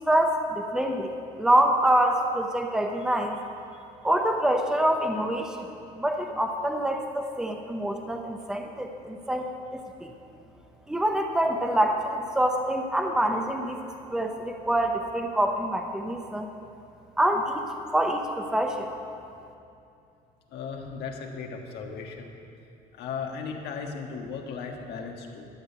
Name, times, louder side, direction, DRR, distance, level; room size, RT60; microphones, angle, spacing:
voice 1, 0.1-1.1 1.4-3.4 4.0-5.7 5.9-9.5 9.7-9.8 10.9-13.8 14.1-16.5 17.2-17.6 17.9-18.9, right 1 dB, 5° right, 3 dB, 0.9 m, -25 dB
voice 2, 20.5-22.3 22.9-25.5, left 5 dB, 80° left, 2 dB, 1.6 m, -36 dB
12.5 x 6.5 x 8.3 m, 2.6 s
cardioid pair, 110°, 17 cm